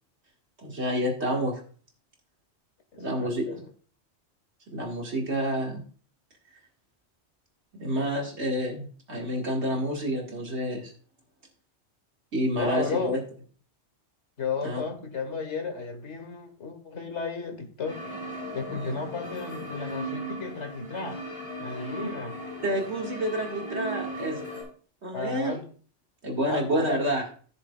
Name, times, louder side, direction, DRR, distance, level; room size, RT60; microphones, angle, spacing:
voice 1, 0.6-1.6 3.0-3.6 4.7-5.8 7.8-10.9 12.3-13.2 14.6-14.8 18.7-18.9 22.6-24.5 25.0-25.6 26.2-27.2, equal, 75° right, 0 dB, 2.4 m, -29 dB
voice 2, 2.9-3.6 12.6-13.2 14.4-18.0 18.5-21.2 21.6-22.4 25.1-25.6 26.5-27.0, left 4 dB, 80° left, 6 dB, 1.8 m, -33 dB
sound 1, 17.8-24.6, right 1 dB, 5° right, 5.1 m, -37 dB
15.0 x 6.7 x 2.4 m, 0.42 s
omnidirectional pair, 1.2 m